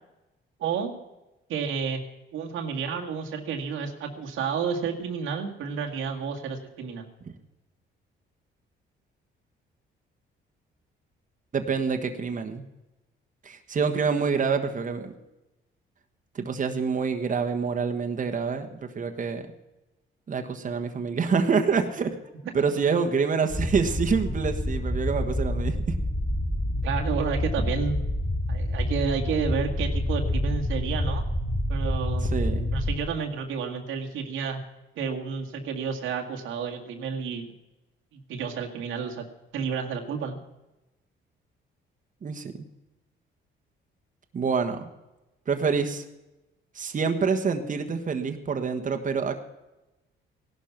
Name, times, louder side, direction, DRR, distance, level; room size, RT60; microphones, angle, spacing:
voice 1, 0.6-0.9 1.5-2.0 2.3-7.1 26.8-28.0 28.5-31.2 31.7-32.3 32.7-34.6 35.0-37.5 38.1-39.2 39.5-40.4, right 6 dB, 85° right, 2 dB, 2.0 m, -30 dB
voice 2, 11.5-12.6 13.4-15.1 16.3-19.4 20.3-22.1 22.5-25.9 32.3-32.7 42.2-42.5 44.3-44.9 45.5-46.0 46.7-49.4, right 5 dB, 40° right, 5 dB, 1.4 m, -26 dB
sound 1, 23.5-33.0, left 1 dB, 15° left, 3.1 m, -28 dB
16.5 x 12.0 x 6.0 m, 1.0 s
cardioid pair, 90°, 20 cm